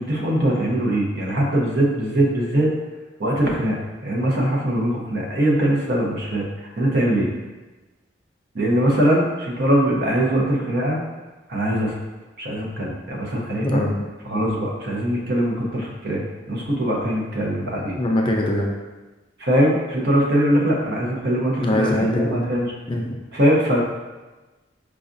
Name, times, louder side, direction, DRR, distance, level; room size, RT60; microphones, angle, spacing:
voice 1, 0.0-2.7 3.2-3.8 4.0-6.4 6.8-7.3 8.5-11.0 11.5-11.9 12.4-13.8 14.3-18.0 19.4-22.7 23.3-23.8, right 1 dB, 60° right, -2 dB, 0.7 m, -21 dB
voice 2, 13.5-14.0 18.0-18.7 21.6-22.5 22.9-23.2, left 1 dB, 25° left, 0 dB, 0.4 m, -22 dB
4.8 x 2.3 x 2.6 m, 1.2 s
head